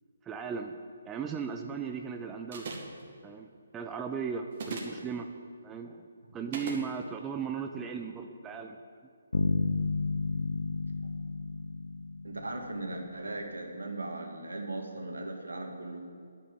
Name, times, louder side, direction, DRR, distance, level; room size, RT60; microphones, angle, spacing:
voice 1, 0.2-0.7 1.1-2.8 3.2-5.3 5.6-6.1 6.3-8.8, right 6 dB, 15° right, 4 dB, 0.6 m, -37 dB
sound 1, 2.5-3.0 4.5-5.0 6.5-6.8, right 4 dB, 40° right, 2.3 m, -38 dB
sound 2, 9.3-13.1, left 4 dB, 65° left, 0.7 m, -32 dB
voice 2, 12.2-16.0, right 2 dB, 75° right, 2 dB, 2.3 m, -38 dB
11.0 x 8.5 x 7.9 m, 2.2 s
figure-of-eight pair, 140°, 0 cm